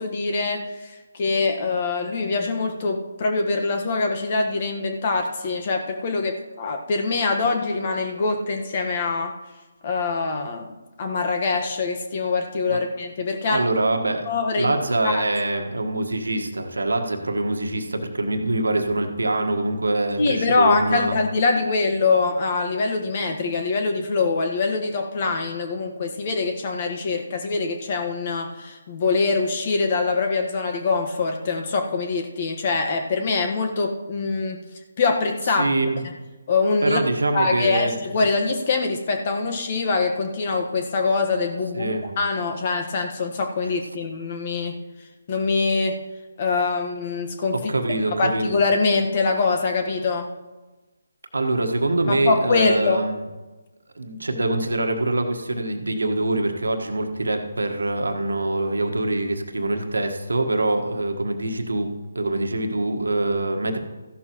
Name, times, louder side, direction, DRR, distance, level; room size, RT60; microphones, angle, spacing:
voice 1, 0.0-9.3 9.8-13.6 14.3-14.8 15.0-15.3 20.2-34.6 35.0-35.7 36.5-37.0 37.3-44.8 45.3-46.0 46.4-47.6 48.2-50.3 52.1-53.0, left 4 dB, 40° left, 4 dB, 1.4 m, -24 dB
voice 2, 13.5-14.3 14.6-21.2 35.6-36.0 36.8-37.9 41.7-42.0 47.7-48.6 51.3-53.2 53.9-63.8, right 2 dB, 85° right, 4 dB, 1.4 m, -24 dB
14.5 x 11.5 x 3.1 m, 1.2 s
figure-of-eight pair, 150°, 0 cm